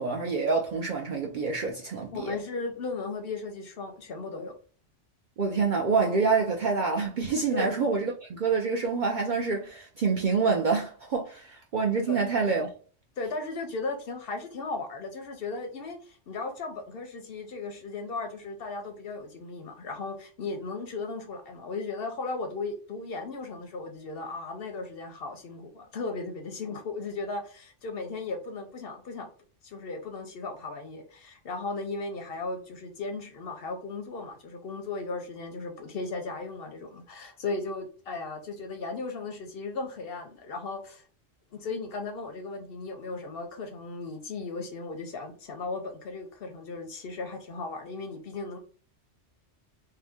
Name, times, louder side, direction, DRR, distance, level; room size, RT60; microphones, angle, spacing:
voice 1, 0.0-2.4 5.4-12.7, right 4 dB, 60° right, 0.5 m, -27 dB
voice 2, 2.1-4.5 7.5-7.7 12.1-12.2 13.2-29.3 29.6-41.0 41.5-48.6, left 3 dB, 60° left, 0.7 m, -36 dB
2.7 x 2.0 x 3.4 m
omnidirectional pair, 1.2 m